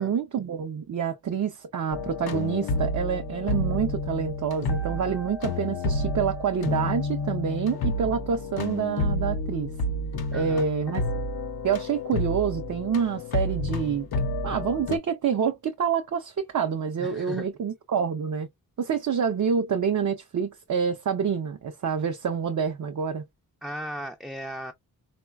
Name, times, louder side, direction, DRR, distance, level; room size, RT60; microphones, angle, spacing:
voice 1, 0.0-9.7 10.3-11.0 11.6-14.1 14.4-18.5 18.8-23.2, right 7 dB, 55° right, 0.5 m, -27 dB
sound 1, 1.9-15.0, left 2 dB, 80° left, 0.6 m, -30 dB
voice 2, 10.3-10.7 17.0-17.5 23.6-24.7, equal, ahead, 0.4 m, -36 dB
3.7 x 2.1 x 2.2 m
cardioid pair, 70°, 37 cm